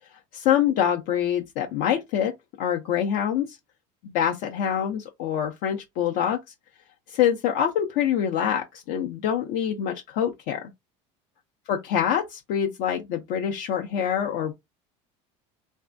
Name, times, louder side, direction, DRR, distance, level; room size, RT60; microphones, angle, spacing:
voice 1, 0.3-3.6 4.0-6.4 7.1-10.7 11.7-14.5, left 9 dB, 70° left, 0.5 m, -25 dB
3.4 x 2.1 x 2.4 m
supercardioid pair, 105°, 16 cm